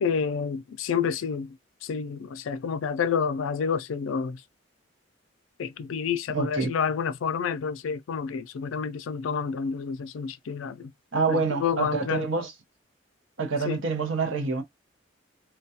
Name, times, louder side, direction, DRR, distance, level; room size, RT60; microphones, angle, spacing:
voice 1, 0.0-1.5 1.8-4.4 5.6-10.9 11.3-12.3 13.6-13.8, left 6 dB, 80° left, 0.4 m, -29 dB
voice 2, 6.3-6.7 11.1-12.5 13.4-14.6, right 4 dB, 75° right, 0.7 m, -27 dB
2.3 x 2.2 x 2.7 m
head